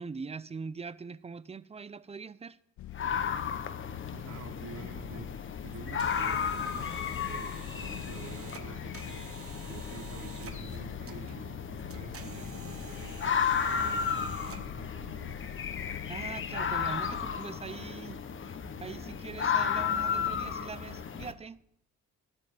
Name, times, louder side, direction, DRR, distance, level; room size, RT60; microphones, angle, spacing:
voice 1, 0.0-2.6 16.1-18.2 18.8-21.6, right 5 dB, 20° right, 0.5 m, -42 dB
sound 1, 2.8-17.4, left 13 dB, 70° left, 0.7 m, -45 dB
sound 2, 2.9-21.3, left 7 dB, 40° left, 1.1 m, -34 dB
voice 2, 4.1-9.3 9.6-15.4, right 4 dB, 65° right, 3.3 m, -48 dB
sound 3, 5.7-14.9, right 7 dB, 50° right, 1.3 m, -50 dB
12.5 x 8.8 x 7.3 m
cardioid pair, 90°, 30 cm